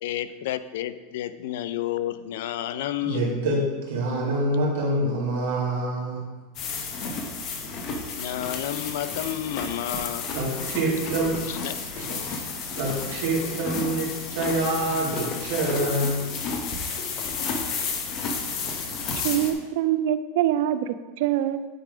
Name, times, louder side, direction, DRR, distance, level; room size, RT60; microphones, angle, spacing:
voice 1, 0.0-3.3 8.2-10.3 11.6-11.8, left 12 dB, 65° left, 13 dB, 0.4 m, -30 dB
voice 2, 3.0-6.2 10.3-11.4 11.9-12.5 12.8-16.2 16.9-17.0, right 1 dB, 80° right, -4 dB, 2.2 m, -26 dB
sound 1, 6.5-19.5, left 4 dB, 35° left, 0.9 m, -32 dB
voice 3, 19.1-21.7, right 11 dB, 60° right, 12 dB, 0.3 m, -25 dB
8.9 x 3.5 x 4.9 m, 1.3 s
supercardioid pair, 170°, 0 cm